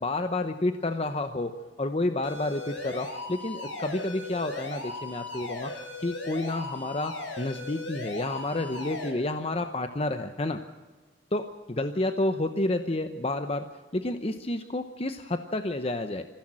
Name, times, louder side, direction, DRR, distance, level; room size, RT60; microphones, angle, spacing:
voice 1, 0.0-1.5 1.8-5.7 6.0-10.6 11.3-13.7 13.9-16.2, left 2 dB, 30° left, 8 dB, 0.9 m, -30 dB
sound 1, 2.2-9.1, left 2 dB, 70° left, 6.1 m, -38 dB
25.0 x 16.0 x 7.6 m, 1.3 s
head